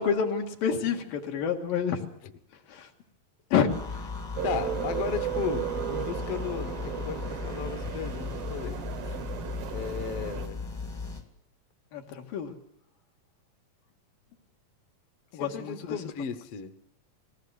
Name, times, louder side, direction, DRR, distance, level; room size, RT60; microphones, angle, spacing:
voice 1, 0.0-2.0 2.7-2.9 3.5-4.1 11.9-12.5 15.3-16.0, left 7 dB, 85° left, 3 dB, 3.5 m, -28 dB
sound 1, 3.7-11.3, left 4 dB, 20° left, 0.8 m, -37 dB
voice 2, 4.4-9.2 9.7-10.6 15.3-16.7, left 8 dB, 60° left, 9 dB, 1.6 m, -36 dB
sound 2, 4.4-10.5, right 10 dB, 70° right, 1.4 m, -35 dB
20.0 x 17.0 x 7.9 m, 0.71 s
omnidirectional pair, 3.9 m